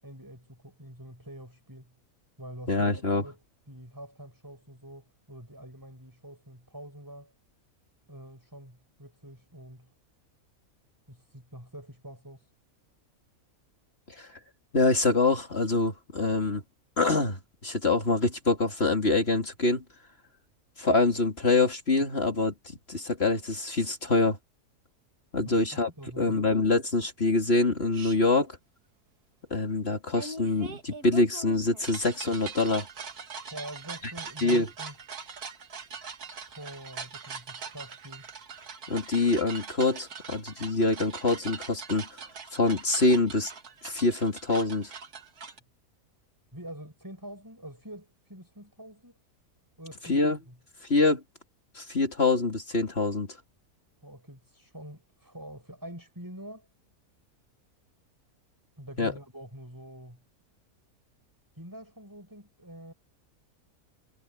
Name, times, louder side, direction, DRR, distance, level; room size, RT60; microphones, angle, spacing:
voice 1, 0.0-1.9 2.4-3.4 3.7-7.3 8.1-9.9 11.1-12.5 25.4-25.6 26.0-26.5 33.5-34.9 36.5-38.3 46.5-49.1 49.8-50.6 54.0-56.7 58.8-60.2 61.5-62.9, right 1 dB, 15° right, 7.3 m, -45 dB
voice 2, 2.7-3.2 14.2-14.3 14.7-16.6 17.0-19.8 20.8-24.4 25.3-25.9 26.2-28.6 29.5-32.9 34.0-34.1 34.4-34.7 38.9-42.2 42.5-43.5 43.8-44.9 50.1-50.4 50.9-51.2 51.7-53.4 59.0-59.1, left 3 dB, 45° left, 3.1 m, -25 dB
sound 1, 27.9-28.2 30.1-45.6, right 5 dB, 90° right, 2.2 m, -42 dB
omnidirectional pair, 1.6 m